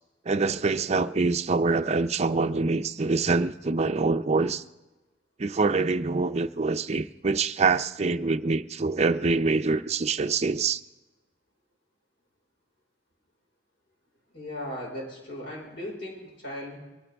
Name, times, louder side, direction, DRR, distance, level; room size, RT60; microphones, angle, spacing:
voice 1, 0.3-4.6 5.4-10.8, right 3 dB, 35° right, 0.5 m, -25 dB
voice 2, 14.3-16.8, left 1 dB, 70° left, 4.8 m, -37 dB
22.5 x 17.0 x 3.5 m
head